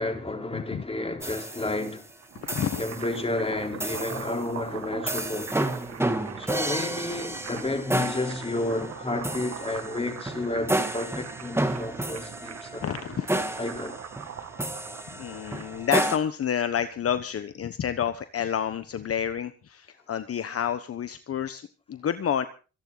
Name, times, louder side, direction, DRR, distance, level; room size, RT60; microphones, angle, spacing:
voice 1, 0.0-2.1 2.8-5.5 6.4-12.8 13.6-14.0, left 2 dB, 20° left, 3.9 m, -31 dB
voice 2, 0.5-0.8 2.4-2.8 12.8-13.4 15.2-22.5, left 8 dB, 50° left, 1.1 m, -29 dB
sound 1, 1.2-2.0 2.5-3.1 3.8-4.4 5.1-16.2, right 1 dB, 10° right, 2.4 m, -31 dB
sound 2, 2.1-16.0, right 8 dB, 55° right, 1.9 m, -42 dB
25.5 x 10.5 x 4.0 m
cardioid pair, 90°, 30 cm